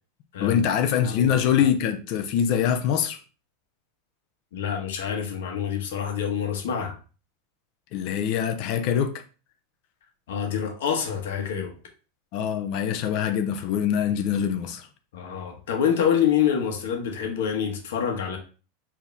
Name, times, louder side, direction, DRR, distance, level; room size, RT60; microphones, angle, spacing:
voice 1, 0.4-3.2 7.9-9.1 12.3-14.9, left 8 dB, 50° left, 0.6 m, -24 dB
voice 2, 4.5-6.9 10.3-11.7 15.1-18.4, left 8 dB, 80° left, 1.3 m, -26 dB
4.6 x 2.8 x 3.5 m
supercardioid pair, 140°, 0 cm